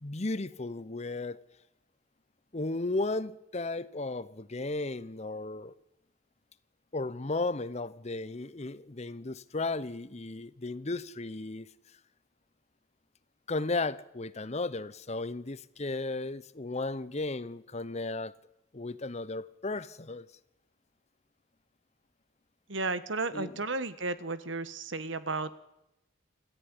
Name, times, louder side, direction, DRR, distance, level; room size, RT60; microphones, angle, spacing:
voice 1, 0.0-1.4 2.5-5.7 6.9-11.7 13.5-18.3 18.7-20.3 23.3-23.6, left 2 dB, 35° left, 0.8 m, -35 dB
voice 2, 22.7-25.6, right 3 dB, 65° right, 1.4 m, -33 dB
28.0 x 13.5 x 9.9 m
head